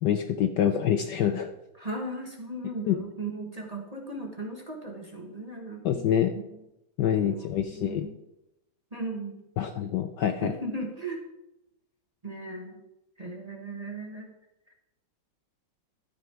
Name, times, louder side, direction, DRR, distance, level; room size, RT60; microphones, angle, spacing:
voice 1, 0.0-1.5 2.9-3.0 5.8-6.3 7.0-8.1 9.6-10.5, left 9 dB, 70° left, 8 dB, 1.2 m, -26 dB
voice 2, 1.8-5.9 6.5-6.6 7.2-8.1 8.9-9.4 10.4-11.2 12.2-12.8 13.2-14.3 14.7-14.8, right 2 dB, 20° right, 1 dB, 1.4 m, -37 dB
12.5 x 9.4 x 4.5 m, 0.90 s
omnidirectional pair, 2.3 m